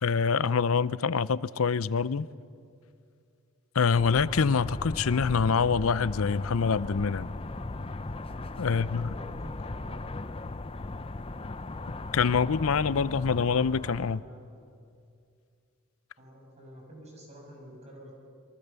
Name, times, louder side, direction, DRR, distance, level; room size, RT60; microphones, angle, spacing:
voice 1, 0.0-2.3 3.7-7.3 8.6-9.1 12.1-14.2, left 5 dB, 75° left, 0.6 m, -25 dB
sound 1, 3.9-14.2, left 2 dB, 25° left, 0.6 m, -38 dB
voice 2, 8.7-10.0 14.0-14.4 16.2-18.1, right 1 dB, 30° right, 6.4 m, -48 dB
27.5 x 23.0 x 6.9 m
head